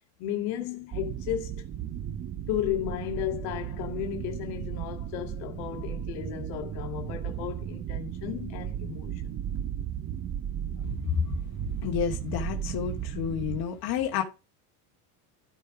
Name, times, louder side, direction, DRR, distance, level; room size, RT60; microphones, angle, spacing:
voice 1, 0.2-1.7 2.5-9.4 10.8-11.1, left 11 dB, 65° left, 2.1 m, -34 dB
sound 1, 0.9-13.6, right 10 dB, 25° right, 0.7 m, -35 dB
voice 2, 11.8-14.2, left 8 dB, 45° left, 2.3 m, -30 dB
13.5 x 5.1 x 5.0 m
supercardioid pair, 125°, 49 cm